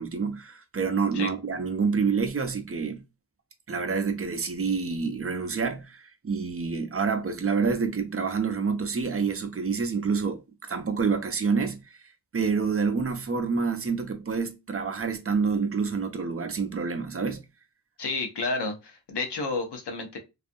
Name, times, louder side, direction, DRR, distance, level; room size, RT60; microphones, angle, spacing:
voice 1, 0.0-3.0 3.7-12.0 12.3-17.4, right 5 dB, 35° right, 0.4 m, -28 dB
voice 2, 18.0-20.2, left 3 dB, 85° left, 0.7 m, -31 dB
2.5 x 2.4 x 2.5 m
wide cardioid pair, 80°, 40 cm